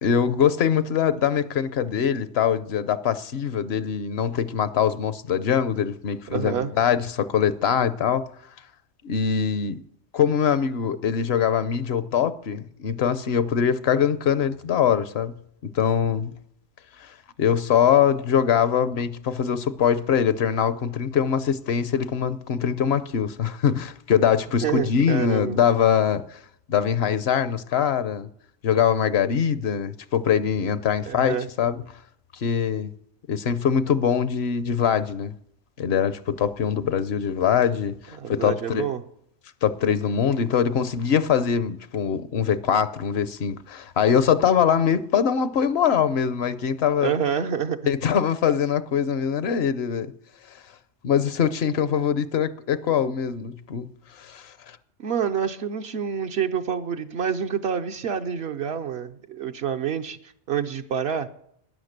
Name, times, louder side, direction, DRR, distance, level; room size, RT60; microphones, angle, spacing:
voice 1, 0.0-8.2 9.0-9.8 10.1-15.3 15.7-16.3 17.0-17.1 17.4-26.4 26.7-28.3 28.6-31.8 32.3-32.9 33.3-35.3 35.8-38.9 39.6-47.1 47.9-50.1 51.0-53.9 54.1-54.8, left 8 dB, 70° left, 0.9 m, -23 dB
voice 2, 6.3-6.7 24.6-25.6 31.1-31.5 38.2-39.0 47.0-47.9 55.0-60.2 60.5-61.3, right 8 dB, 70° right, 0.9 m, -27 dB
12.5 x 10.0 x 6.6 m
omnidirectional pair, 1.1 m